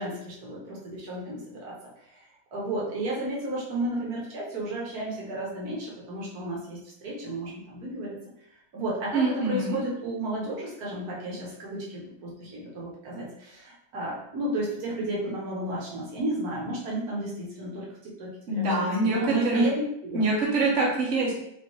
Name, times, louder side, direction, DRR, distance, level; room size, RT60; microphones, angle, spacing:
voice 1, 0.0-1.7 2.1-2.2 2.5-8.2 8.7-20.3, right 1 dB, 75° right, -5 dB, 1.5 m, -32 dB
voice 2, 9.1-9.8 18.5-19.6 20.1-21.3, right 2 dB, 55° right, -4 dB, 1.3 m, -25 dB
4.9 x 2.6 x 3.0 m, 0.78 s
omnidirectional pair, 1.6 m